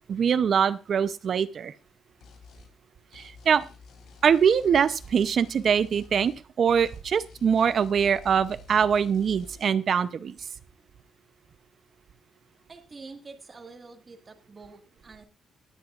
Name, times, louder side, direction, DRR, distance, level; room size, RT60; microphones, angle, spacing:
voice 1, 0.1-1.7 3.1-3.6 4.2-10.3, right 7 dB, 45° right, 14 dB, 0.7 m, -23 dB
sound 1, 2.2-2.7 3.1-6.4 6.7-9.6, left 5 dB, 85° left, 3.1 m, -51 dB
voice 2, 12.7-15.3, right 4 dB, 25° right, 3 dB, 1.8 m, -46 dB
19.0 x 11.0 x 2.5 m, 0.30 s
cardioid pair, 160°, 0 cm